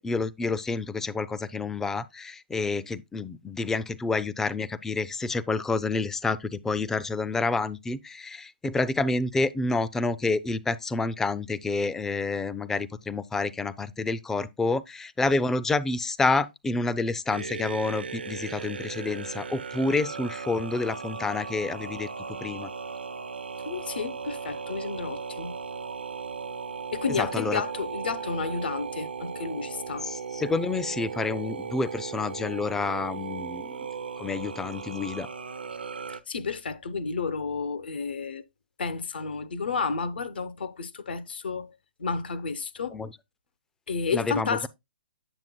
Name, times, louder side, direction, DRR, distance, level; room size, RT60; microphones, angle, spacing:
voice 1, 0.0-22.1 22.4-22.7 27.2-27.6 30.1-33.8 34.2-35.3 42.9-43.1 44.1-44.7, left 3 dB, 5° left, 0.3 m, -28 dB
sound 1, 17.3-36.2, right 6 dB, 80° right, 0.6 m, -37 dB
voice 2, 23.6-25.6 26.9-30.1 36.1-38.4 38.8-41.7 42.0-43.0 43.9-44.7, left 5 dB, 70° left, 0.8 m, -31 dB
7.8 x 7.0 x 2.2 m
figure-of-eight pair, 130°, 5 cm